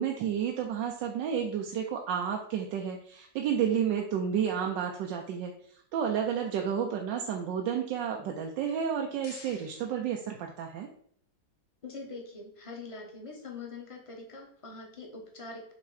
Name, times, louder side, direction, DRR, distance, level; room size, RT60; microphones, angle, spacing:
voice 1, 0.0-10.9, right 8 dB, 90° right, 2 dB, 1.4 m, -31 dB
sound 1, 8.7-10.9, left 4 dB, 60° left, 1.4 m, -55 dB
voice 2, 11.8-15.7, left 3 dB, 25° left, 0 dB, 0.9 m, -43 dB
6.9 x 2.9 x 4.7 m, 0.62 s
omnidirectional pair, 1.9 m